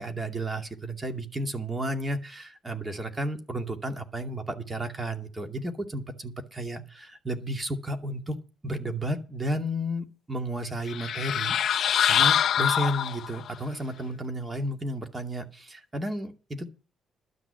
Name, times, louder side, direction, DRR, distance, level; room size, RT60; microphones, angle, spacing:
voice 1, 0.0-8.4 8.6-16.3 16.6-16.7, right 1 dB, 25° right, 5 dB, 2.4 m, -32 dB
sound 1, 10.9-13.5, left 9 dB, 65° left, 0.5 m, -24 dB
12.5 x 6.3 x 8.2 m, 0.35 s
cardioid pair, 90°, 0 cm